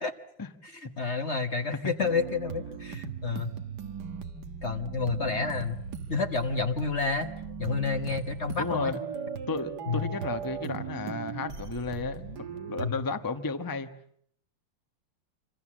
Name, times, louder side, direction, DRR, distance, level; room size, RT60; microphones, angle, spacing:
voice 1, 0.6-3.5 4.6-5.8 6.1-7.3 7.6-8.9 9.9-10.1 12.8-13.1, left 4 dB, 40° left, 1.3 m, -30 dB
sound 1, 2.0-12.9, right 6 dB, 60° right, 2.0 m, -38 dB
voice 2, 8.6-9.0 9.5-13.9, left 3 dB, 15° left, 1.0 m, -33 dB
26.5 x 26.5 x 7.5 m
omnidirectional pair, 2.0 m